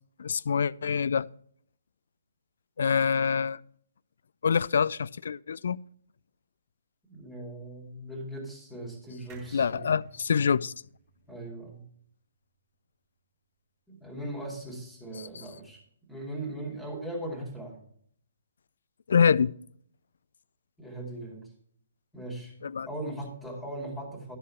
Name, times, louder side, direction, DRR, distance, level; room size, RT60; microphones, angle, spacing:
voice 1, 0.2-1.3 2.8-3.6 4.4-5.8 9.5-10.7 19.1-19.5 22.6-22.9, left 6 dB, 60° left, 0.3 m, -25 dB
voice 2, 7.1-10.0 11.3-11.8 13.9-15.8 16.1-17.8 20.8-21.5 22.1-22.5 22.9-24.4, right 1 dB, 5° left, 2.7 m, -39 dB
sound 1, 9.3-12.8 13.2-13.3 13.5-13.6, right 7 dB, 25° right, 1.6 m, -58 dB
12.5 x 5.6 x 5.7 m
figure-of-eight pair, 130°, 0 cm